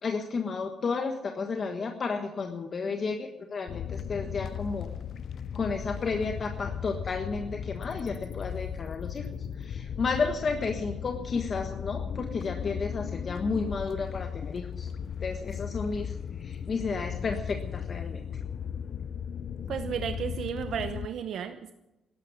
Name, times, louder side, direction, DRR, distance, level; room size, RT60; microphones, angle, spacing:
voice 1, 0.0-4.9 5.5-9.3 9.6-14.9 15.2-18.2, left 4 dB, 45° left, 4 dB, 1.5 m, -32 dB
sound 1, 3.7-21.1, left 8 dB, 60° left, 0.5 m, -36 dB
voice 2, 19.7-21.7, right 8 dB, 65° right, 9 dB, 0.8 m, -33 dB
13.0 x 11.5 x 9.6 m, 0.99 s
cardioid pair, 90°, 0 cm